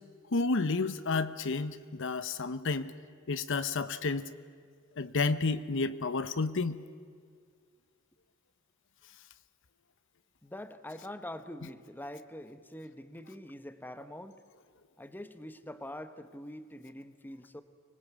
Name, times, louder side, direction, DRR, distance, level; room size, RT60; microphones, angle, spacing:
voice 1, 0.3-2.9 3.3-4.3 5.0-6.8, left 3 dB, 60° left, 13 dB, 0.9 m, -31 dB
voice 2, 10.4-14.4 15.0-17.6, left 1 dB, 10° left, 10 dB, 1.0 m, -44 dB
25.0 x 20.5 x 8.1 m, 2.1 s
head